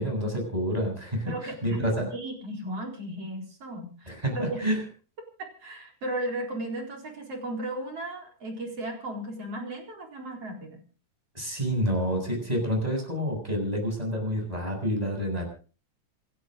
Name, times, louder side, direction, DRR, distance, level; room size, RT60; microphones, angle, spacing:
voice 1, 0.0-2.1 4.1-4.8 11.3-15.5, equal, 10° right, 2 dB, 7.3 m, -28 dB
voice 2, 1.3-4.6 5.4-10.8, right 1 dB, 50° right, 1 dB, 5.2 m, -35 dB
27.0 x 11.0 x 3.8 m, 0.37 s
omnidirectional pair, 3.6 m